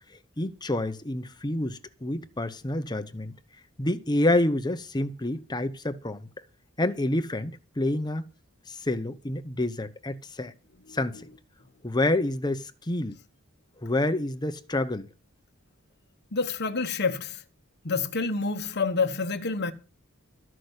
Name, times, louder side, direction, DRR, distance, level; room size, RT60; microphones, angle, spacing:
voice 1, 0.4-3.3 3.8-6.3 6.8-8.2 8.7-10.5 10.9-11.2 11.8-13.2 13.8-15.1, left 1 dB, 20° left, 0.9 m, -28 dB
voice 2, 16.3-17.4 17.8-19.7, left 4 dB, 50° left, 1.2 m, -28 dB
13.0 x 6.2 x 8.1 m
head